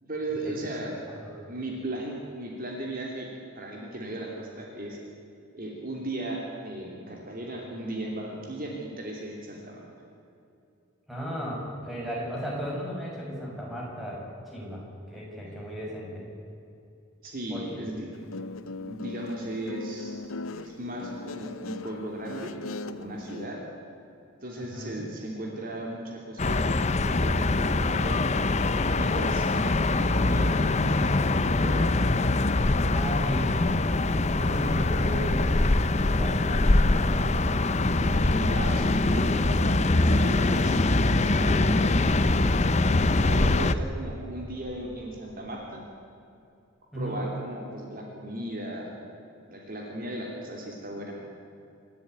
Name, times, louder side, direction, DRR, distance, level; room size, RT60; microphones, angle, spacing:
voice 1, 0.0-1.0 1.5-5.0 5.5-9.8 17.2-18.1 18.8-20.2 20.6-22.5 22.8-23.6 24.4-28.2 29.0-31.9 37.9-42.1 43.2-45.8 46.9-48.9 49.5-51.1, right 1 dB, 45° right, -1 dB, 3.1 m, -36 dB
voice 2, 11.1-14.8 15.1-16.2 17.5-17.8 24.6-25.1 32.9-33.5 34.3-37.3 46.9-47.2, equal, ahead, -4 dB, 6.8 m, -35 dB
Guitar, 18.1-23.5, left 3 dB, 85° left, 0.9 m, -39 dB
sound 1, 26.4-43.7, left 2 dB, 35° left, 0.7 m, -23 dB
27.0 x 13.0 x 9.5 m, 2.7 s
head